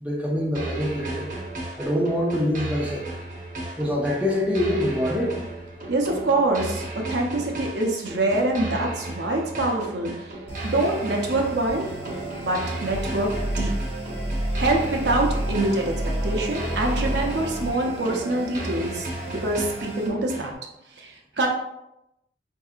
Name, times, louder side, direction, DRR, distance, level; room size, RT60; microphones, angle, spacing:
voice 1, 0.0-1.3 1.8-3.1 3.8-5.3, left 1 dB, 10° right, -2 dB, 0.4 m, -25 dB
sound 1, 0.5-20.5, right 1 dB, 45° right, 0.8 m, -35 dB
voice 2, 5.9-10.4 10.6-11.9 12.4-13.7 14.6-15.9 16.2-20.5 21.0-21.5, right 2 dB, 80° right, 0 dB, 0.7 m, -25 dB
sound 2, 10.5-20.1, right 1 dB, 30° left, 1.1 m, -31 dB
4.6 x 2.7 x 2.4 m, 0.86 s
head